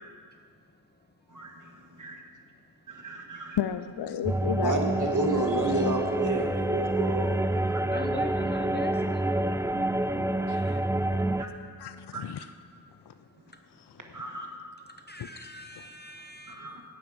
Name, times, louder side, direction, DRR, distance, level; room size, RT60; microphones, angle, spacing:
voice 1, 2.9-3.6 4.6-7.8 11.4-11.5 12.1-12.3 14.1-14.6 16.5-16.8, right 2 dB, 45° right, 1 dB, 1.7 m, -31 dB
voice 2, 3.6-6.0 10.5-10.8 11.8-12.5, left 9 dB, 70° left, 11 dB, 0.5 m, -33 dB
sound 1, 4.2-11.4, right 1 dB, 10° right, 0.3 m, -28 dB
voice 3, 7.9-9.3 15.1-16.8, left 1 dB, 25° left, 4 dB, 0.8 m, -40 dB
17.5 x 9.4 x 5.0 m, 2.1 s
wide cardioid pair, 85°, 41 cm